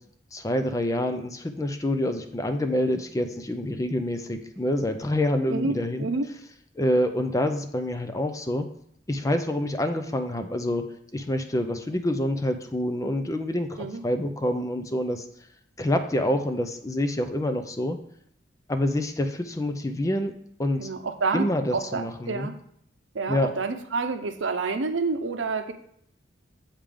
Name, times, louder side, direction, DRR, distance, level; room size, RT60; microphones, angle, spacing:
voice 1, 0.3-6.1 6.8-8.7 9.1-15.3 15.8-18.0 18.7-20.3 20.6-20.9 21.3-22.5 23.3-23.5, left 1 dB, 20° left, 7 dB, 0.5 m, -27 dB
voice 2, 5.5-6.3 13.8-14.0 20.8-22.5 23.1-25.7, right 4 dB, 85° right, 7 dB, 0.7 m, -28 dB
7.3 x 3.6 x 5.0 m, 0.67 s
head